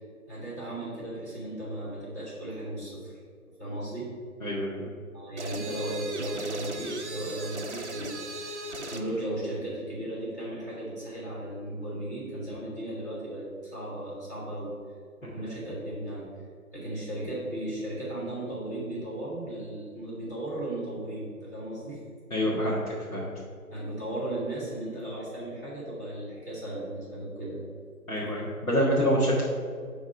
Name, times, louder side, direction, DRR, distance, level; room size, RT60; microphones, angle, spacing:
voice 1, 0.3-3.1 3.6-4.1 5.1-14.7 15.2-16.3 16.7-22.0 23.7-27.6, right 1 dB, 10° left, -12 dB, 1.8 m, -36 dB
voice 2, 4.4-4.9 15.2-15.6 22.3-23.3 28.1-29.4, equal, 65° left, -7 dB, 1.8 m, -27 dB
sound 1, 5.4-9.1, right 1 dB, 50° right, 0.7 m, -37 dB
10.5 x 3.7 x 4.7 m, 2.1 s
figure-of-eight pair, 170°, 44 cm